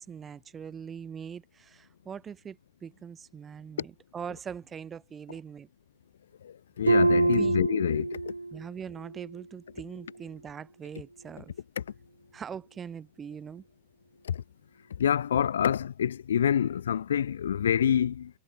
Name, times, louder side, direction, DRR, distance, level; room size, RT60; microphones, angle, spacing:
voice 1, 0.0-5.7 7.2-7.5 8.5-11.5 12.3-13.6, right 7 dB, 20° right, 6.2 m, -42 dB
voice 2, 6.8-8.3 15.0-18.3, left 9 dB, 65° left, 0.4 m, -26 dB
Harp, 6.9-8.6 9.0-9.4 9.9-10.1, right 3 dB, 80° right, 0.5 m, -25 dB
figure-of-eight pair, 90°, 0 cm